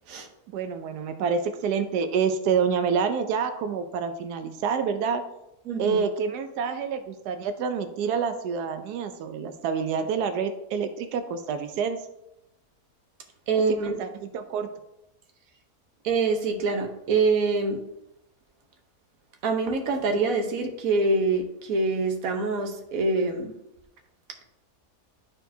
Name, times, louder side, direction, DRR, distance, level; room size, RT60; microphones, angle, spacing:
voice 1, 0.5-5.2 5.8-12.0 13.7-14.7, right 6 dB, 90° right, 7 dB, 1.2 m, -27 dB
voice 2, 5.7-6.0 13.5-13.9 16.0-17.8 19.4-23.5, right 3 dB, 65° right, 4 dB, 1.3 m, -25 dB
11.5 x 4.4 x 2.7 m, 0.87 s
omnidirectional pair, 1.7 m